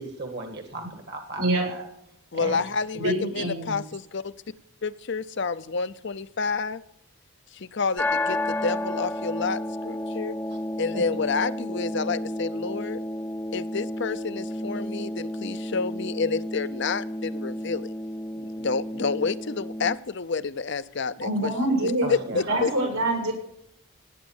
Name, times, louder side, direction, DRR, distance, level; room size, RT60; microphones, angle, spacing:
voice 1, 0.0-1.9 2.4-2.6 10.9-11.0 22.0-22.7, right 2 dB, 50° right, 5 dB, 1.6 m, -36 dB
voice 2, 1.4-1.7 2.9-3.8 21.2-22.1 22.5-23.3, right 1 dB, 90° right, 0 dB, 7.3 m, -25 dB
voice 3, 2.3-4.3 4.8-6.8 7.5-10.4 10.8-13.0 13.5-17.9 18.4-21.5 21.8-22.7, left 4 dB, 55° left, 14 dB, 0.6 m, -29 dB
sound 1, 8.0-20.0, left 1 dB, 10° left, 0.7 m, -32 dB
18.0 x 9.4 x 7.1 m, 0.77 s
head